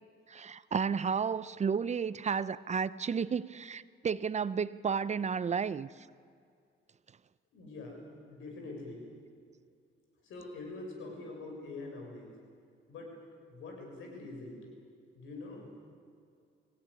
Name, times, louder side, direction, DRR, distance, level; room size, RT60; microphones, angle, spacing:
voice 1, 0.3-5.9, right 6 dB, 35° right, 17 dB, 0.6 m, -32 dB
voice 2, 7.5-9.1 10.2-12.3 12.9-14.6 15.1-15.7, left 2 dB, 80° left, 1 dB, 6.7 m, -45 dB
24.0 x 17.0 x 9.9 m, 2.3 s
cardioid pair, 90°, 20 cm